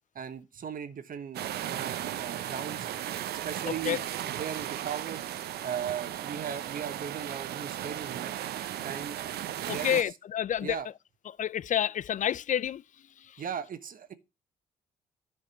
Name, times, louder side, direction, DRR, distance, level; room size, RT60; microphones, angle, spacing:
voice 1, 0.1-2.9 3.4-5.2 5.6-8.3 8.8-9.2 9.6-10.0 10.6-10.9 13.4-14.1, right 8 dB, 55° right, 1.3 m, -38 dB
sound 1, 1.3-10.0, right 11 dB, 70° right, 0.8 m, -36 dB
voice 2, 3.6-4.0 9.7-10.8 11.3-12.8 13.2-13.4, left 10 dB, 50° left, 0.5 m, -29 dB
10.5 x 5.3 x 6.9 m
hypercardioid pair, 45°, 17 cm